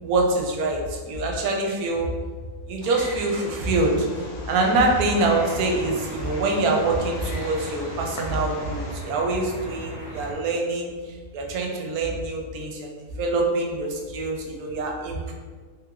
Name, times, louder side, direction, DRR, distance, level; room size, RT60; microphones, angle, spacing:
voice 1, 0.0-2.1 2.7-4.1 4.5-12.9 13.2-15.3, right 2 dB, 75° right, 0 dB, 1.0 m, -25 dB
Wild animals, 2.8-8.9, left 1 dB, 80° left, 1.1 m, -40 dB
sound 1, 4.5-10.3, equal, 25° left, 0.5 m, -38 dB
3.4 x 2.8 x 2.4 m, 1.5 s
omnidirectional pair, 1.6 m